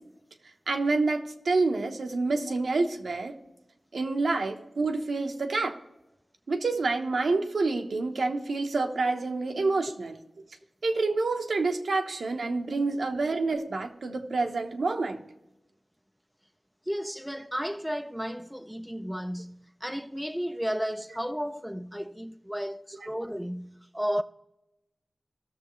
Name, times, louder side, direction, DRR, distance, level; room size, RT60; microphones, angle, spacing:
voice 1, 0.7-3.3 3.9-5.8 6.5-10.1 10.8-15.2 23.0-23.1, right 3 dB, 80° right, 0.9 m, -28 dB
voice 2, 16.9-24.2, equal, ahead, 0.4 m, -33 dB
16.0 x 6.6 x 3.1 m
cardioid pair, 55°, 0 cm